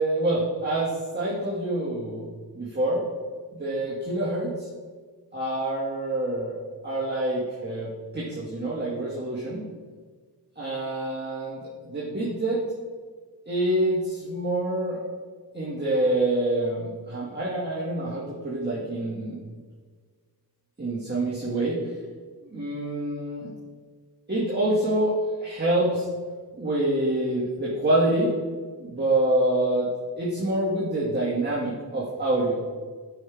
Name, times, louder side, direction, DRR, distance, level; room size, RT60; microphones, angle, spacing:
voice 1, 0.0-2.3 2.5-3.0 3.6-4.7 5.3-6.5 6.8-9.6 10.6-12.6 13.5-15.0 15.5-19.4 20.8-21.9 22.5-23.5 24.3-25.2 25.4-26.1 26.6-28.3 28.8-29.9 30.2-32.6, right 1 dB, 25° right, -7 dB, 2.2 m, -26 dB
9.9 x 5.7 x 3.6 m, 1.5 s
cardioid pair, 55°, 41 cm